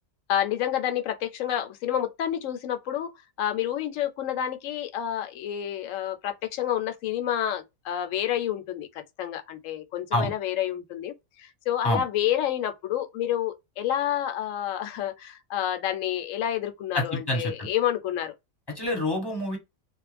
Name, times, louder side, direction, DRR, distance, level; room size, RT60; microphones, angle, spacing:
voice 1, 0.3-3.1 3.4-18.3, left 11 dB, 75° left, 0.9 m, -29 dB
voice 2, 16.9-17.7 18.8-19.6, left 1 dB, 20° left, 0.9 m, -27 dB
2.5 x 2.1 x 3.2 m
omnidirectional pair, 1.4 m